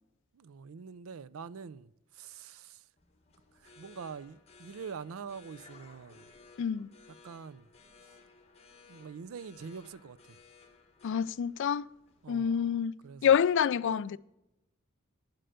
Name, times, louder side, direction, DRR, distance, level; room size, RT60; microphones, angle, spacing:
voice 1, 0.3-2.9 3.5-6.3 7.2-7.7 8.9-10.4 12.2-12.7 13.0-13.3 13.9-14.1, right 6 dB, 90° right, 0.5 m, -45 dB
sound 1, 3.0-12.5, left 4 dB, 30° left, 1.7 m, -58 dB
voice 2, 6.6-6.9 11.0-11.8 12.3-12.9 13.2-14.2, left 8 dB, 60° left, 0.3 m, -27 dB
10.5 x 7.7 x 6.6 m
head